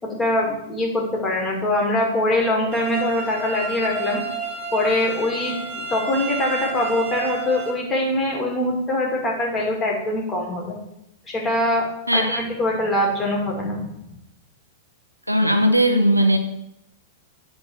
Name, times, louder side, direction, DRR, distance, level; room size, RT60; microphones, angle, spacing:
voice 1, 0.0-4.2 4.7-10.8 11.3-11.9 12.1-13.9, left 1 dB, 15° left, -1 dB, 2.5 m, -23 dB
sound 1, 2.7-7.7, right 4 dB, 50° right, 2.0 m, -30 dB
voice 2, 12.1-12.4 15.3-16.4, equal, 90° right, 6 dB, 0.8 m, -18 dB
9.1 x 3.9 x 5.6 m, 0.83 s
figure-of-eight pair, 95°, 0 cm